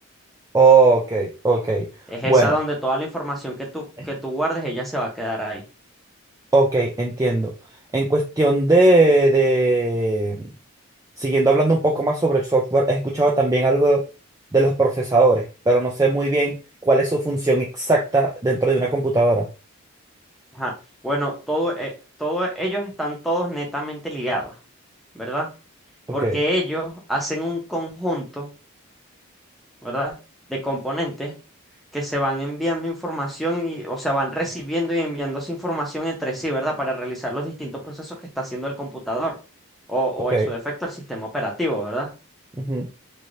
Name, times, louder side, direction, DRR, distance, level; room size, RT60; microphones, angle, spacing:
voice 1, 0.5-1.9 2.2-2.5 6.5-7.5 7.9-10.5 11.2-14.0 14.5-16.6 16.8-19.5 26.2-26.4 40.3-40.5 42.6-42.9, right 2 dB, 15° right, 0 dB, 0.3 m, -18 dB
voice 2, 2.1-5.6 20.5-20.7 21.0-21.9 22.2-24.5 25.1-25.5 26.1-28.5 29.8-30.1 30.5-31.3 31.9-39.3 39.9-42.1, equal, ahead, -1 dB, 0.8 m, -26 dB
3.1 x 2.8 x 2.6 m, 0.32 s
head